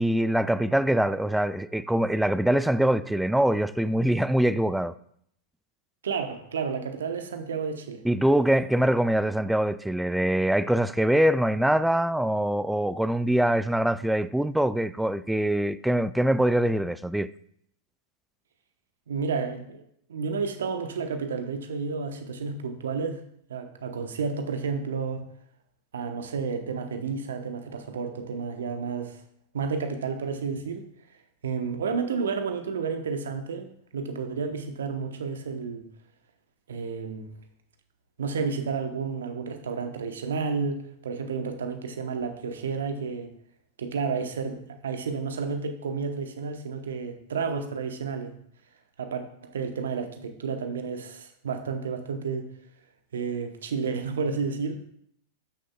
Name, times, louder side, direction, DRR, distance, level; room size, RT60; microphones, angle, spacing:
voice 1, 0.0-4.9 8.0-17.3, right 1 dB, 5° right, 0.3 m, -23 dB
voice 2, 6.0-8.0 19.1-19.8 20.1-23.2 23.5-25.2 25.9-29.2 29.5-30.9 31.4-35.8 36.7-37.3 38.2-43.3 43.8-48.3 49.0-52.5 53.1-54.8, right 5 dB, 75° right, 1.0 m, -31 dB
11.5 x 6.4 x 2.3 m
figure-of-eight pair, 95°, 0 cm